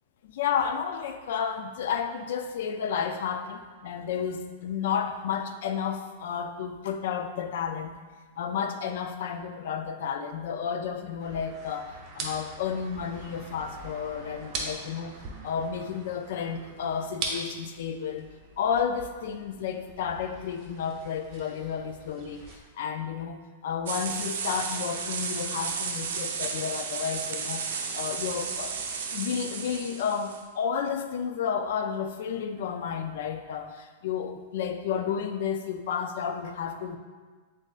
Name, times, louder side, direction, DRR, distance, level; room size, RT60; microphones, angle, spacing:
voice 1, 0.2-7.9 8.4-15.2 15.4-18.3 18.6-22.4 22.8-27.6 27.9-28.7 29.1-37.0, left 7 dB, 65° left, 7 dB, 0.4 m, -31 dB
sound 1, 11.2-22.6, right 3 dB, 35° right, 0.7 m, -41 dB
sound 2, 23.9-30.4, right 5 dB, 75° right, 0.5 m, -33 dB
7.4 x 2.5 x 2.4 m, 1.4 s
hypercardioid pair, 145°, 0 cm